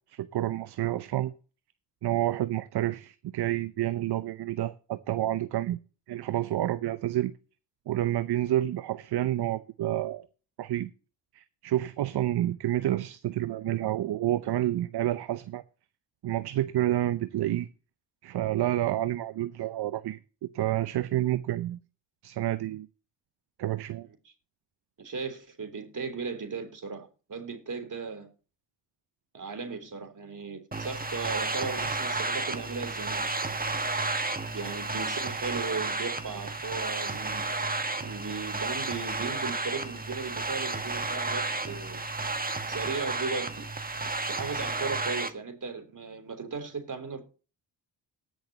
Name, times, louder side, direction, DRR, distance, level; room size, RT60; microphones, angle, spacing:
voice 1, 0.1-1.3 2.0-5.8 6.1-7.3 7.9-10.3 10.6-10.9 11.3-15.6 16.2-17.7 18.2-21.8 22.2-22.9 23.6-24.1, right 13 dB, 60° right, 0.7 m, -29 dB
voice 2, 25.0-28.3 29.3-33.6 34.5-37.7 38.0-42.0 42.7-43.7 43.9-47.2, right 4 dB, 45° right, 3.5 m, -37 dB
sound 1, 30.7-45.3, right 3 dB, 20° right, 1.5 m, -32 dB
19.5 x 6.6 x 2.9 m
supercardioid pair, 50°, 44 cm